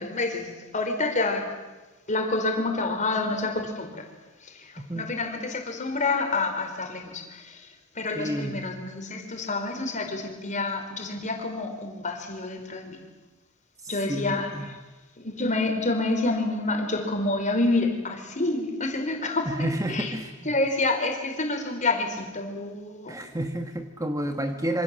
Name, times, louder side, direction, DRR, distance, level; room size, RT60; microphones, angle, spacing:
voice 1, 0.0-1.5 2.1-4.1 4.4-7.7 7.9-13.0 13.9-14.8 15.2-19.5 19.9-20.1 20.4-23.3 24.3-24.4, left 2 dB, 35° left, 4 dB, 4.6 m, -28 dB
voice 2, 4.8-5.1 8.1-8.7 14.1-14.7 19.4-20.3 23.1-24.8, right 1 dB, 15° right, 6 dB, 1.5 m, -30 dB
26.5 x 26.0 x 7.7 m, 1.2 s
head